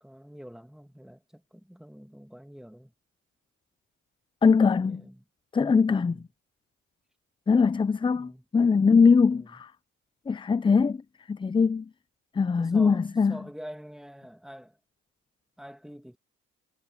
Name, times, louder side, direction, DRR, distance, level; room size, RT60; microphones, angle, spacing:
voice 1, 0.0-2.9 4.6-5.2 6.0-6.3 8.1-8.4 9.3-9.6 12.6-14.8 15.6-16.2, equal, ahead, 2.4 m, -46 dB
voice 2, 4.4-5.0 5.5-6.2 7.5-9.7 10.3-11.0 11.3-11.9 12.4-13.4, left 5 dB, 15° left, 0.4 m, -22 dB
supercardioid pair, 75°, 32 cm